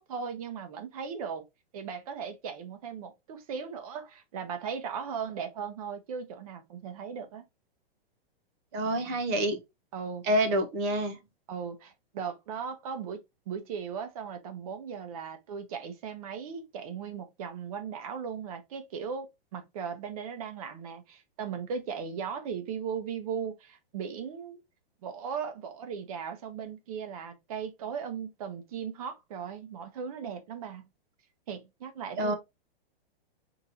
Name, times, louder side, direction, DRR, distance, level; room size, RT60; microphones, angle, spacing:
voice 1, 0.0-1.4 1.7-7.4 9.9-10.3 11.5-24.6 25.0-30.9 31.5-32.3, right 6 dB, 40° right, 0.9 m, -37 dB
voice 2, 8.7-9.6 10.3-11.2 32.2-32.3, right 1 dB, 15° right, 0.5 m, -27 dB
4.3 x 3.0 x 3.6 m
hypercardioid pair, 170°, 30 cm